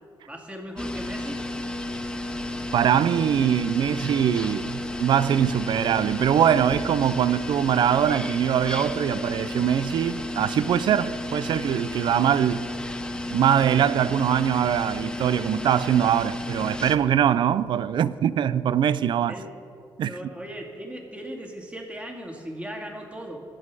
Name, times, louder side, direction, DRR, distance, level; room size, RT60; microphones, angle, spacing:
voice 1, 0.3-1.4 19.3-19.5 20.0-23.4, equal, 15° right, 2.2 m, -38 dB
sound 1, 0.8-17.0, left 1 dB, 10° left, 0.8 m, -32 dB
voice 2, 2.7-12.7 13.3-19.4 20.0-20.2, right 9 dB, 65° right, 0.4 m, -22 dB
22.0 x 7.7 x 4.8 m
cardioid pair, 90°, 9 cm